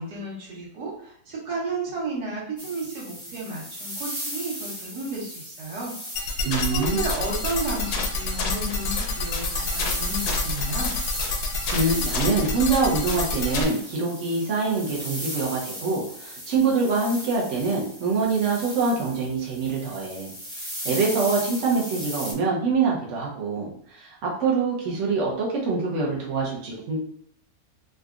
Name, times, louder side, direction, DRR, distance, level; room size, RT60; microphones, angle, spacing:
voice 1, 0.0-5.9 6.2-10.9, right 2 dB, 70° right, -4 dB, 1.5 m, -33 dB
sound 1, 2.6-22.3, equal, 5° left, 0.5 m, -37 dB
sound 2, 6.2-13.6, left 3 dB, 70° left, 1.1 m, -28 dB
voice 2, 6.4-7.0 11.7-27.0, right 4 dB, 50° right, -3 dB, 1.0 m, -25 dB
3.8 x 2.3 x 2.4 m, 0.65 s
omnidirectional pair, 1.9 m